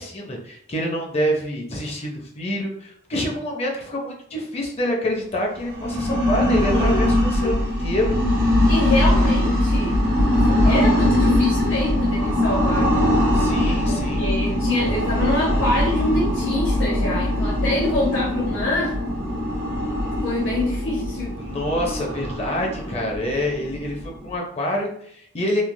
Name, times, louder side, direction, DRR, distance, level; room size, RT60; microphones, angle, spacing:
voice 1, 0.0-8.2 13.3-14.3 21.4-25.6, left 1 dB, 30° left, 0 dB, 0.5 m, -27 dB
sound 1, 5.6-24.3, left 1 dB, 50° right, 1.1 m, -21 dB
voice 2, 6.7-7.1 7.4-7.6 8.7-10.0 10.3-13.1 13.8-19.0 20.2-21.3, left 2 dB, 70° left, -6 dB, 0.8 m, -25 dB
3.1 x 2.3 x 2.2 m, 0.66 s
head